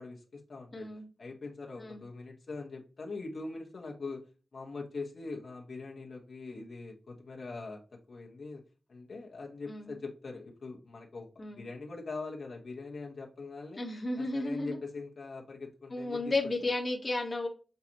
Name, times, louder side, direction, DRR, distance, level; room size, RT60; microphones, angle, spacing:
voice 1, 0.0-0.9 1.2-4.2 4.5-8.6 8.9-11.3 11.6-13.8 14.2-16.3, left 3 dB, 70° left, -1 dB, 1.3 m, -42 dB
voice 2, 0.7-1.0 1.8-2.0 9.7-9.9 11.4-11.6 13.8-14.8 15.9-17.5, left 2 dB, 35° left, 0 dB, 1.3 m, -33 dB
6.8 x 2.5 x 2.9 m, 0.34 s
wide cardioid pair, 80°, 0 cm